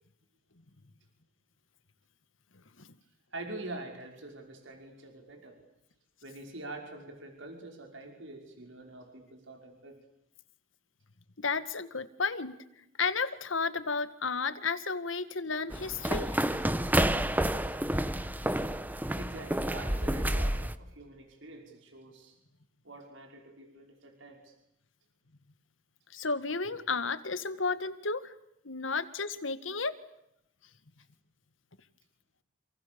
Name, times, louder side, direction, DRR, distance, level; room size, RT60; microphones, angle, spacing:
voice 1, 3.3-5.6 6.2-10.0 19.2-22.3 22.8-24.5, right 2 dB, 80° right, 3 dB, 5.7 m, -45 dB
voice 2, 11.4-12.6 13.0-16.4 26.1-28.3 28.6-30.0, left 4 dB, 90° left, 12 dB, 1.9 m, -32 dB
sound 1, 15.7-20.8, right 1 dB, 10° right, 1.0 m, -29 dB
29.0 x 28.5 x 7.0 m, 0.81 s
head